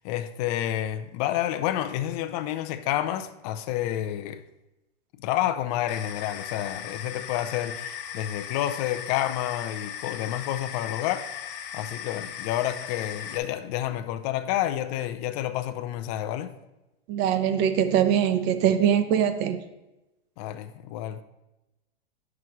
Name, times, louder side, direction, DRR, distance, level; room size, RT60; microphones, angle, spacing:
voice 1, 0.0-4.4 5.2-16.5 20.4-21.2, left 12 dB, 40° left, 0.6 m, -29 dB
sound 1, 5.9-13.4, left 9 dB, 65° left, 0.9 m, -38 dB
voice 2, 17.1-19.6, right 9 dB, 35° right, 0.6 m, -22 dB
9.1 x 6.0 x 3.1 m
hypercardioid pair, 130°, 30 cm